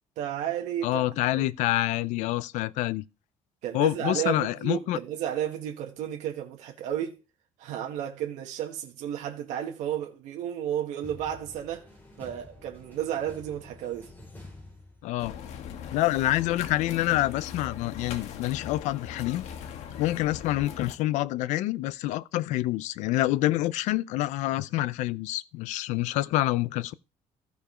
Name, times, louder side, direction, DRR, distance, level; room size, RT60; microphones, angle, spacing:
voice 1, 0.2-1.5 3.6-7.1 7.6-11.9 12.2-14.1, right 10 dB, 80° right, 1.6 m, -32 dB
voice 2, 0.8-3.0 3.7-5.0 15.0-15.3 15.9-19.4 20.0-26.9, left 16 dB, 90° left, 0.5 m, -27 dB
sound 1, 11.0-15.5, left 2 dB, 15° left, 3.3 m, -49 dB
sound 2, 15.2-21.0, left 8 dB, 65° left, 1.5 m, -40 dB
14.5 x 5.1 x 5.0 m
cardioid pair, 175°, 12 cm